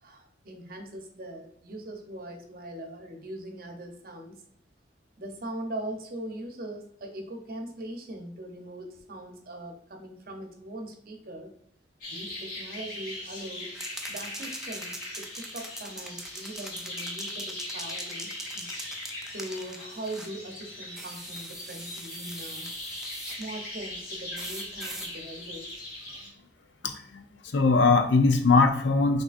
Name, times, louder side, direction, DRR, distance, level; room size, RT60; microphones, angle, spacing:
voice 1, 0.0-4.4 5.2-11.5 12.1-13.7 14.1-18.7 19.3-23.0 23.2-25.7, right 1 dB, 50° right, 3 dB, 0.8 m, -41 dB
sound 1, 12.0-26.3, left 1 dB, 50° left, 1.3 m, -40 dB
sound 2, 13.8-20.4 20.9-23.5 24.4-25.1, right 1 dB, 5° right, 0.3 m, -42 dB
voice 2, 26.8-27.2 27.5-29.2, left 3 dB, 75° left, 6 dB, 0.6 m, -21 dB
6.0 x 2.7 x 2.5 m, 0.72 s
head